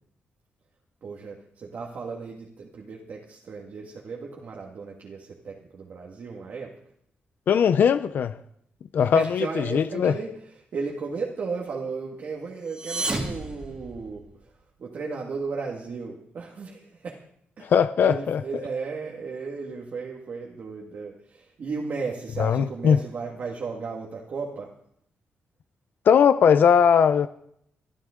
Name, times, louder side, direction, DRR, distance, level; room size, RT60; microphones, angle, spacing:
voice 1, 1.0-6.7 9.0-14.5 14.8-17.2 17.6-17.7 18.0-24.7, right 4 dB, 50° right, 1.9 m, -35 dB
voice 2, 7.5-8.3 8.9-10.1 17.6-18.4 22.4-23.0 26.1-27.3, left 7 dB, 60° left, 0.5 m, -19 dB
sound 1, 12.6-14.5, right 2 dB, 25° right, 2.3 m, -32 dB
22.5 x 12.5 x 3.8 m
wide cardioid pair, 155°, 4 cm